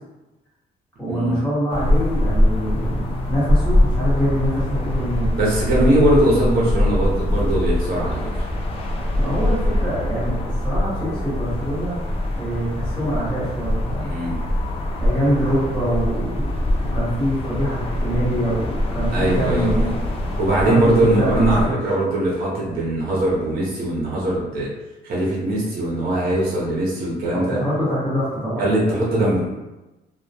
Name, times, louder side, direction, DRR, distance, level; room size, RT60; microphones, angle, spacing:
voice 1, 1.0-5.3 9.2-12.0 12.4-14.1 15.0-19.9 20.6-21.7 27.3-28.7, equal, 5° left, -11 dB, 1.0 m, -25 dB
sound 1, 1.7-21.7, left 1 dB, 35° left, 0.4 m, -23 dB
voice 2, 5.4-8.3 14.0-14.4 19.1-19.9 20.4-24.7 25.0-27.6 28.6-29.5, right 1 dB, 60° right, -6 dB, 0.7 m, -21 dB
2.1 x 2.1 x 2.7 m, 1.0 s
cardioid pair, 175°, 18 cm